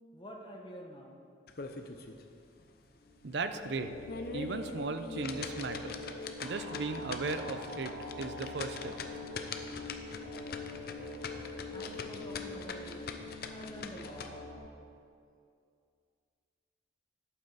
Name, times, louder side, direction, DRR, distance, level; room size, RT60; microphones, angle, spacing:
voice 1, 0.1-1.2 11.7-13.0 13.5-14.3, equal, 25° left, 0 dB, 1.1 m, -47 dB
sound 1, 1.5-2.2 2.6-2.7 3.2-3.3 3.9-14.3, left 4 dB, 55° left, 0.6 m, -43 dB
sound 2, 3.0-14.6, left 3 dB, 85° left, 1.8 m, -44 dB
voice 2, 3.2-3.9 4.3-6.0 6.4-8.9, right 3 dB, 65° right, 9 dB, 0.5 m, -37 dB
11.5 x 8.5 x 4.0 m, 2.4 s
head